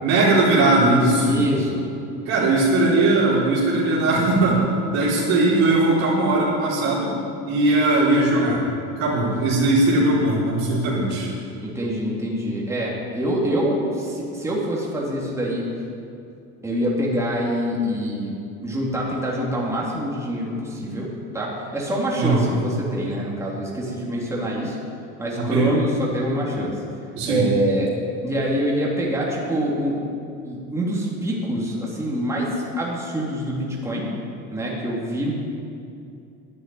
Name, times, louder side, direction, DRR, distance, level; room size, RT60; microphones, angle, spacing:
voice 1, 0.0-1.4 2.3-4.6 4.9-7.1 7.5-8.6 9.0-11.3 22.2-22.5 25.3-25.7 27.2-27.5, right 2 dB, 65° right, -6 dB, 3.8 m, -19 dB
voice 2, 1.2-1.8 11.6-15.6 16.6-18.4 18.6-21.1 21.3-24.8 25.2-26.7 27.3-27.9 28.2-30.0 30.4-34.1 34.5-35.3, right 1 dB, 10° right, -5 dB, 3.1 m, -25 dB
11.0 x 9.8 x 9.3 m, 2.6 s
cardioid pair, 130°, 29 cm